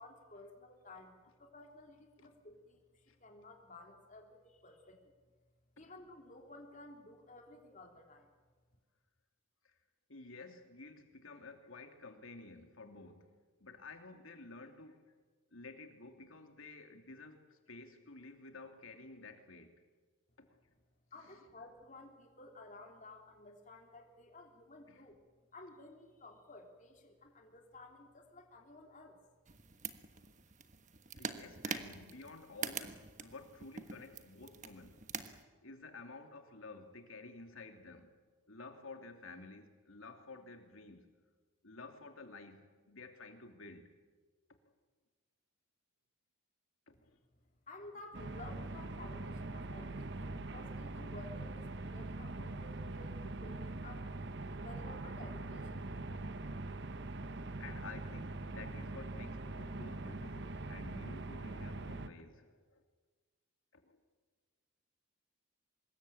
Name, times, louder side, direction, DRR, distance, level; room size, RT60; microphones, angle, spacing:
voice 1, 0.0-5.1 5.8-8.3 21.1-25.2 25.5-29.2 46.9-47.1 47.7-54.0 54.6-55.7, left 2 dB, 35° left, 3.3 m, -54 dB
voice 2, 10.1-13.3 13.6-15.1 15.5-19.8 20.4-20.6 21.2-21.4 24.9-25.1 31.1-35.0 35.6-38.1 38.5-41.1 41.6-43.9 46.9-47.2 57.6-62.8 63.7-64.0, left 3 dB, 75° left, 3.0 m, -52 dB
sound 1, 29.5-35.4, right 6 dB, 35° right, 1.4 m, -45 dB
sound 2, 48.1-62.1, right 2 dB, 55° right, 1.0 m, -43 dB
25.0 x 21.0 x 8.8 m
head